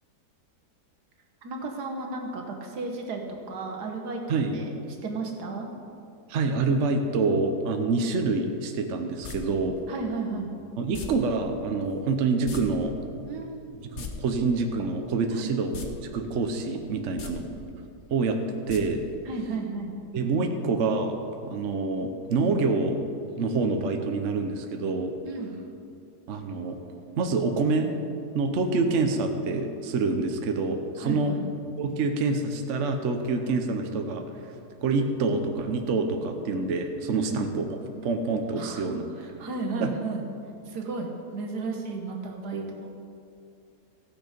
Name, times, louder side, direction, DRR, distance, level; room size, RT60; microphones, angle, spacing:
voice 1, 1.4-4.8 5.0-5.7 9.9-10.5 13.3-13.8 15.3-15.5 17.1-17.6 19.3-19.9 25.2-25.6 31.0-31.4 37.2-37.5 38.6-38.9 39.2-40.2 40.7-42.9, right 3 dB, 80° right, 2 dB, 1.7 m, -34 dB
voice 2, 6.3-9.8 10.8-12.9 13.8-15.9 16.1-17.5 18.1-18.4 18.7-19.0 20.1-23.0 23.3-25.1 26.3-26.8 27.2-27.9 28.3-31.3 31.8-34.5 34.8-39.0 39.8-39.9 42.5-42.7, right 3 dB, 55° right, 5 dB, 1.0 m, -26 dB
sound 1, 9.2-9.4 10.9-11.1 12.4-12.6 12.9-13.0 13.8-14.1 15.7-15.9 16.2-16.3 17.1-17.3 18.7-18.8 19.1-19.2, left 7 dB, 50° left, 1.2 m, -37 dB
15.5 x 6.4 x 5.1 m, 2.6 s
omnidirectional pair, 1.7 m